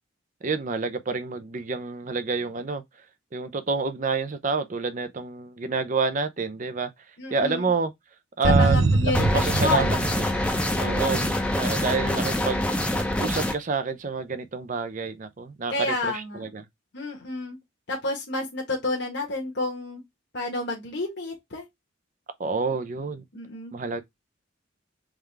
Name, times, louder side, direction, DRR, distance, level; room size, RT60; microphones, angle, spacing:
voice 1, 0.4-2.8 3.3-6.9 7.3-7.9 8.4-8.8 9.2-10.0 10.7-11.3 11.6-12.7 13.2-16.6 22.4-23.2 23.7-24.0, right 4 dB, 40° right, 0.5 m, -28 dB
voice 2, 7.2-7.7 8.4-10.0 10.8-11.3 15.7-16.5 16.9-17.6 17.9-20.0 20.3-21.6 23.3-23.7, left 2 dB, 60° left, 1.2 m, -30 dB
sound 1, 8.4-11.2, right 3 dB, 80° right, 0.6 m, -23 dB
sound 2, 9.1-13.5, left 1 dB, 5° left, 0.7 m, -25 dB
3.6 x 3.4 x 3.3 m
head